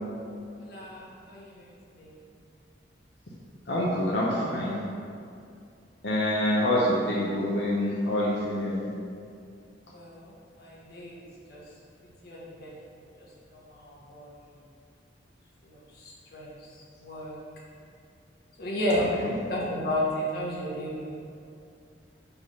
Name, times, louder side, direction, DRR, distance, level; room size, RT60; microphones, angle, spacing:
voice 1, 0.6-1.7 2.0-2.1 9.9-11.2 11.5-11.6 12.2-13.3 13.5-14.4 15.6-16.7 17.0-17.4 18.6-19.1 19.5-21.2, equal, 60° left, -5 dB, 1.5 m, -33 dB
voice 2, 3.7-4.8 6.0-8.9 19.2-19.3, left 1 dB, 90° left, -6 dB, 1.0 m, -26 dB
5.9 x 3.7 x 5.7 m, 2.4 s
head